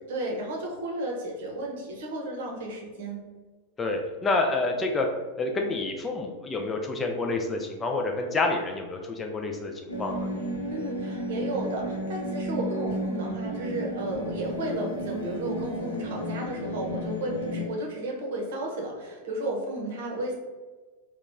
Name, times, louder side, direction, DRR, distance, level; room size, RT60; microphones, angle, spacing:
voice 1, 0.0-3.2 10.7-20.3, right 1 dB, 55° right, 0 dB, 0.8 m, -33 dB
voice 2, 3.8-5.1 5.4-10.3, left 3 dB, 20° left, 3 dB, 0.3 m, -28 dB
sound 1, 9.9-17.7, equal, 80° left, 0.7 m, -33 dB
2.8 x 2.3 x 3.4 m, 1.3 s
figure-of-eight pair, 90°, 0 cm